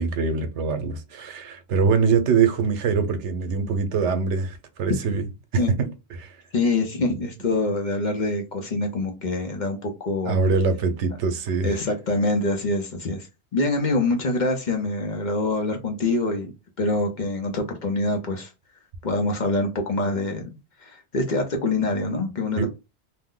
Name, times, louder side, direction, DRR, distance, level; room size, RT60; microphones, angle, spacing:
voice 1, 0.0-5.2 5.8-6.4 10.3-11.8 22.6-22.7, right 5 dB, 85° right, 0.9 m, -23 dB
voice 2, 6.5-10.4 11.6-13.3 13.5-16.5 16.8-18.5 19.0-22.7, left 2 dB, 50° left, 0.7 m, -25 dB
2.6 x 2.1 x 3.6 m
omnidirectional pair, 1.2 m